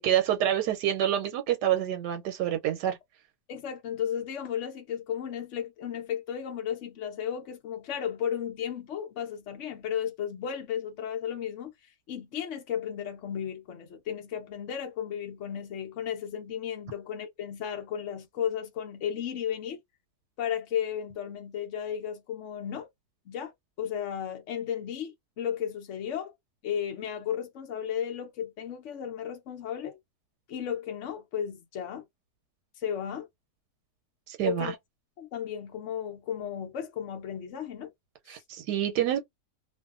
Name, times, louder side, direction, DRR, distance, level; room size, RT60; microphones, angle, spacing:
voice 1, 0.0-3.0 34.3-34.7 38.3-39.2, right 11 dB, 85° right, 1.2 m, -27 dB
voice 2, 3.5-11.7 12.1-19.8 20.4-22.9 23.3-23.5 23.8-26.3 26.6-30.0 30.5-32.0 32.8-33.3 34.5-34.8 35.2-37.9 38.3-38.4, left 9 dB, 60° left, 0.8 m, -34 dB
2.6 x 2.5 x 2.4 m
omnidirectional pair, 1.8 m